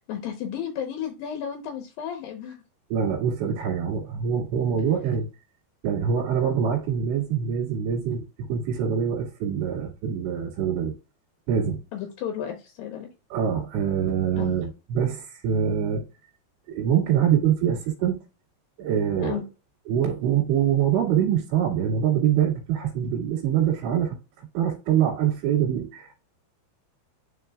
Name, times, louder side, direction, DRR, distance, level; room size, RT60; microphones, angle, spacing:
voice 1, 0.1-2.6 11.9-13.1 14.3-14.5 19.2-19.4, left 9 dB, 75° left, 2.2 m, -33 dB
voice 2, 2.9-5.3 5.8-8.2 8.5-10.9 11.5-11.8 13.3-16.0 16.7-18.2 18.8-19.4 19.9-24.2 24.5-26.2, right 8 dB, 85° right, 4.3 m, -24 dB
11.5 x 4.2 x 2.3 m
omnidirectional pair, 5.2 m